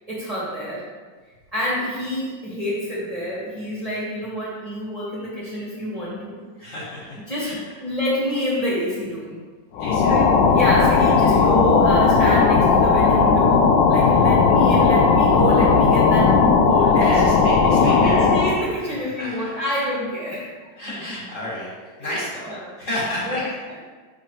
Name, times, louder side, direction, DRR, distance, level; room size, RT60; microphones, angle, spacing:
voice 1, 0.1-0.8 1.5-6.3 7.3-7.5 7.8-9.4 10.1-13.6 13.9-17.3 17.6-20.5 21.5-21.6 22.0-22.1 22.5-22.6 23.2-23.5, equal, 20° right, -8 dB, 1.5 m, -27 dB
voice 2, 6.6-7.6 9.8-10.3 11.0-11.4 17.0-18.3 19.0-19.6 20.8-21.7 22.0-22.5 22.8-23.4, left 1 dB, 45° left, -7 dB, 2.1 m, -32 dB
sound 1, 9.8-18.6, left 4 dB, 85° left, 1.4 m, -16 dB
6.9 x 5.4 x 3.2 m, 1.4 s
omnidirectional pair, 2.0 m